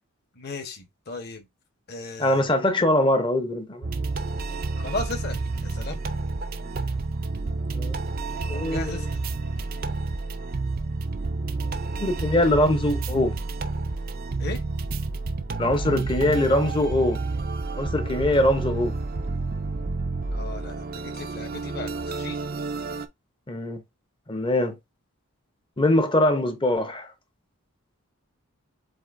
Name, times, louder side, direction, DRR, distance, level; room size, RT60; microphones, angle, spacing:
voice 1, 0.3-1.5 1.9-2.5 4.8-6.0 8.5-9.2 14.4-14.6 20.3-22.4, left 3 dB, 45° left, 1.2 m, -36 dB
voice 2, 2.2-3.9 6.6-6.7 7.7-7.9 8.5-9.0 12.0-13.3 15.6-17.2 17.8-18.9 23.5-23.8 24.3-24.8 25.8-27.1, left 1 dB, 20° left, 0.7 m, -22 dB
sound 1, 3.8-23.1, right 3 dB, 40° right, 0.5 m, -30 dB
7.7 x 2.6 x 2.5 m
head